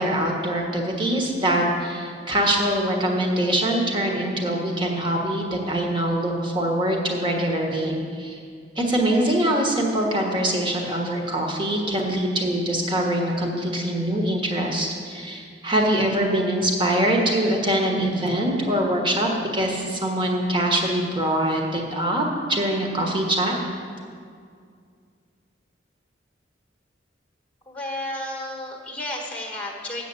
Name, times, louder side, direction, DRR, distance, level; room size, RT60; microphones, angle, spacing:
voice 1, 0.0-8.4 8.7-23.6, right 1 dB, 25° right, 1 dB, 1.3 m, -23 dB
voice 2, 27.7-30.0, left 1 dB, 10° left, 0 dB, 1.3 m, -32 dB
7.9 x 6.6 x 8.2 m, 2.2 s
head